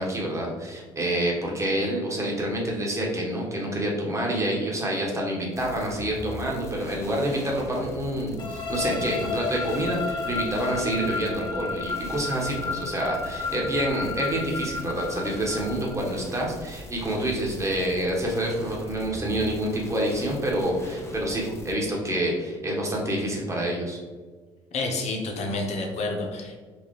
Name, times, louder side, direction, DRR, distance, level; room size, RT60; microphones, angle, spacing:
voice 1, 0.0-24.0, right 1 dB, 25° right, -2 dB, 1.5 m, -27 dB
sound 1, 5.5-21.7, left 1 dB, 20° left, 0.9 m, -42 dB
sound 2, 8.4-16.2, left 4 dB, 35° left, 1.2 m, -32 dB
voice 2, 24.7-26.5, left 2 dB, 60° left, 2 dB, 1.0 m, -29 dB
4.5 x 2.8 x 3.2 m, 1.4 s
supercardioid pair, 65°, 13 cm